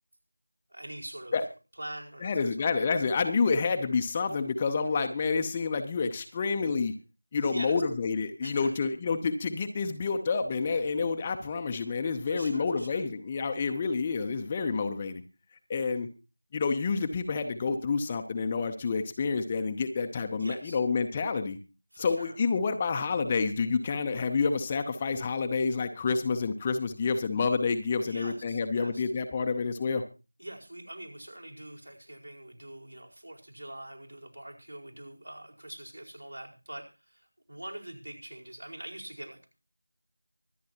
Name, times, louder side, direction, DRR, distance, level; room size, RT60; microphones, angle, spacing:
voice 1, 0.7-1.3 1.8-2.3 2.6-2.7 7.3-7.8 8.4-8.7 12.3-13.0 20.4-20.8 21.9-22.4 28.0-29.0 30.4-39.5, right 1 dB, 70° right, -1 dB, 4.7 m, -44 dB
voice 2, 2.2-6.9 7.3-15.2 15.7-16.1 16.5-21.6 22.0-30.0, left 4 dB, 15° left, 6 dB, 0.7 m, -29 dB
24.5 x 9.4 x 2.9 m, 0.31 s
figure-of-eight pair, 170°, 0 cm